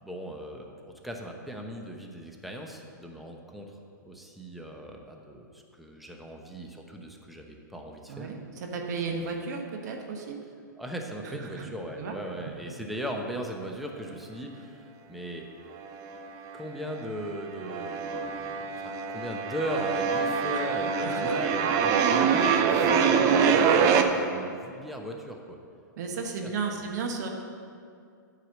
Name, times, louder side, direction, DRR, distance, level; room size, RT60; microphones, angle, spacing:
voice 1, 0.0-8.3 9.1-9.4 10.8-15.5 16.5-25.6 26.4-26.9, right 1 dB, ahead, 1 dB, 0.9 m, -38 dB
voice 2, 8.1-10.4 11.2-11.7 12.0-12.1 20.5-21.4 26.0-27.3, right 4 dB, 60° right, 2 dB, 1.2 m, -34 dB
sound 1, 15.8-16.6 16.9-24.0, right 6 dB, 35° right, 0.6 m, -25 dB
9.1 x 4.9 x 7.4 m, 2.3 s
hypercardioid pair, 125°, 10 cm